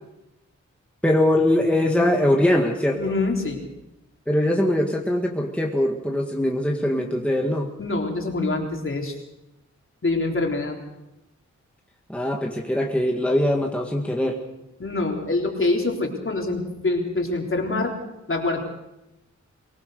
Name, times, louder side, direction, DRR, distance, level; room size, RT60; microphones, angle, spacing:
voice 1, 1.0-3.0 4.3-7.7 12.1-14.4, left 1 dB, 5° left, 1 dB, 1.8 m, -22 dB
voice 2, 3.0-3.6 7.8-9.1 10.0-10.8 14.8-18.0 18.3-18.6, left 2 dB, 45° left, 1 dB, 3.9 m, -25 dB
23.5 x 18.5 x 6.6 m, 0.93 s
wide cardioid pair, 95°, 29 cm